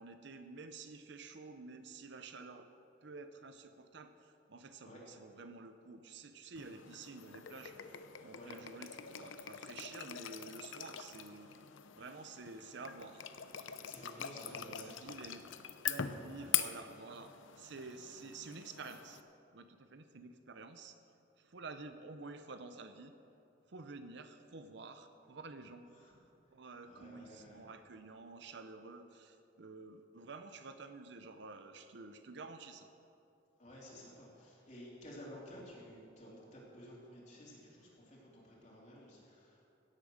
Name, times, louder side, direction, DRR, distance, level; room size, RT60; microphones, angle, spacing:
voice 1, 0.0-2.7 3.0-11.5 11.9-13.3 14.4-15.4 15.8-19.2 19.5-21.0 21.4-23.1 23.7-25.9 26.5-32.9, right 3 dB, 65° right, 9 dB, 0.7 m, -50 dB
sound 1, 6.6-19.2, left 10 dB, 85° left, 0.7 m, -43 dB
voice 2, 13.8-15.1 16.3-16.5 25.9-26.1 26.8-27.6 33.6-39.7, equal, 40° left, -5 dB, 3.4 m, -53 dB
16.5 x 8.6 x 6.4 m, 2.8 s
head